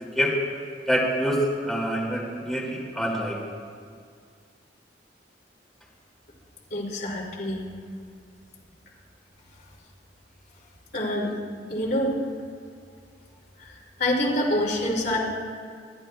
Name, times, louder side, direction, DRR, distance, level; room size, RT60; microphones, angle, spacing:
voice 1, 0.9-3.4, equal, ahead, -5 dB, 2.3 m, -26 dB
voice 2, 6.7-7.6 10.9-11.3 11.7-12.2 13.6-15.2, left 1 dB, 65° left, -5 dB, 2.7 m, -26 dB
25.5 x 11.0 x 2.3 m, 2.1 s
head